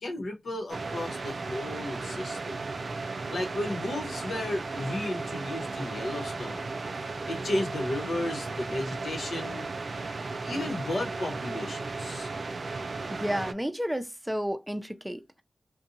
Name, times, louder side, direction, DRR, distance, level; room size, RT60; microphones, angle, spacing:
voice 1, 0.0-2.6 3.3-6.6 7.0-9.7 10.4-12.3, left 1 dB, 85° left, 0.9 m, -34 dB
sound 1, 0.7-13.5, right 3 dB, 70° right, 0.3 m, -35 dB
voice 2, 13.1-15.4, equal, 10° right, 0.5 m, -32 dB
2.7 x 2.1 x 2.6 m
cardioid pair, 45°, 0 cm